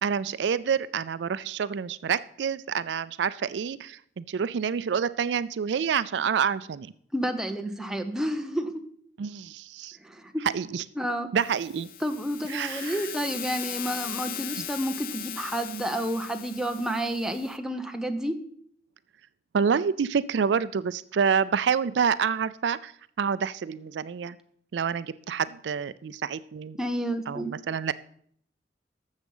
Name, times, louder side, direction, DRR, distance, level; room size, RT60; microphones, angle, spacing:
voice 1, 0.0-6.9 9.2-10.0 10.5-10.8 11.3-11.9 12.5-13.1 14.6-14.7 19.5-22.9 23.2-24.4 24.7-26.8 27.3-27.9, right 6 dB, 70° right, 16 dB, 0.4 m, -28 dB
voice 2, 7.1-8.7 10.0-10.3 11.0-11.3 12.0-18.3 26.8-27.5, right 1 dB, 5° right, 5 dB, 0.9 m, -30 dB
sound 1, 11.4-17.6, left 10 dB, 50° left, 0.6 m, -38 dB
13.0 x 7.2 x 5.5 m, 0.64 s
head